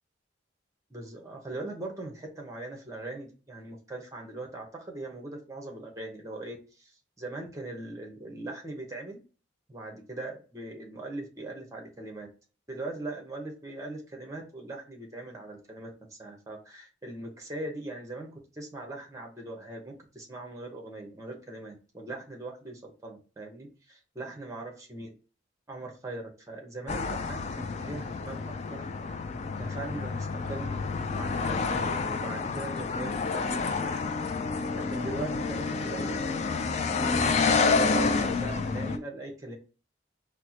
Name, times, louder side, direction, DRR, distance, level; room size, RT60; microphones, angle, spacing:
voice 1, 0.9-9.2 9.7-12.3 12.7-25.2 25.7-28.9 29.6-30.8 31.2-34.0 34.8-36.2 37.0-39.6, right 2 dB, 15° right, 1 dB, 0.9 m, -40 dB
sound 1, 26.9-39.0, left 4 dB, 35° left, 0.3 m, -29 dB
4.3 x 2.1 x 2.8 m, 0.35 s
head